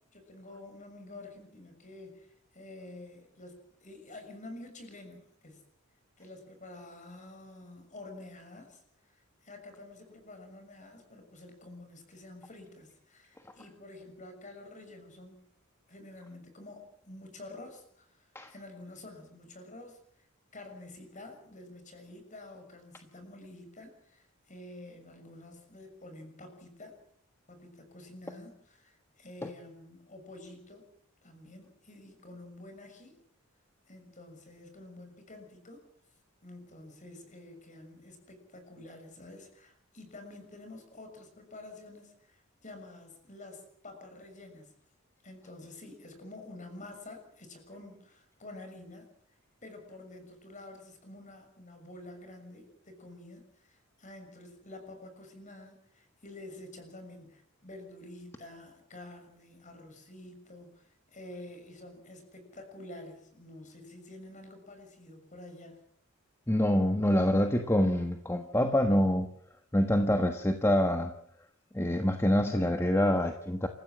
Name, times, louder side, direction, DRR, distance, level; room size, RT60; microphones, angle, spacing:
voice 1, 0.1-5.6 6.2-15.5 15.9-20.0 20.5-27.0 27.5-30.9 31.2-33.2 33.9-35.9 36.4-44.7 45.2-49.1 49.6-65.9, left 2 dB, 35° left, 6 dB, 6.5 m, -49 dB
voice 2, 66.5-69.3 69.7-71.2 71.7-73.7, left 1 dB, 15° left, 5 dB, 1.3 m, -26 dB
28.0 x 15.0 x 7.5 m, 0.65 s
head